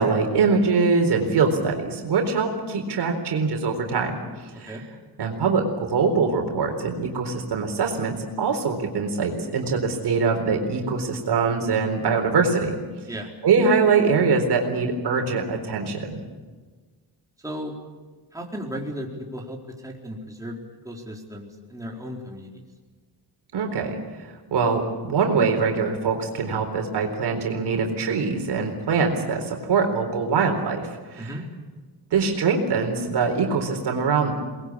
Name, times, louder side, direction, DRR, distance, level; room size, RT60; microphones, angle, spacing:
voice 1, 0.0-4.2 4.6-4.7 5.2-12.8 13.4-16.2 23.5-24.0 24.5-31.3 32.1-34.3, right 4 dB, 70° right, 3 dB, 4.1 m, -23 dB
voice 2, 4.5-4.8 13.1-13.3 17.4-17.7 18.3-20.6 20.8-22.6 31.2-31.4, equal, 10° right, -1 dB, 4.4 m, -35 dB
23.0 x 21.0 x 8.7 m, 1.4 s
cardioid pair, 95°, 42 cm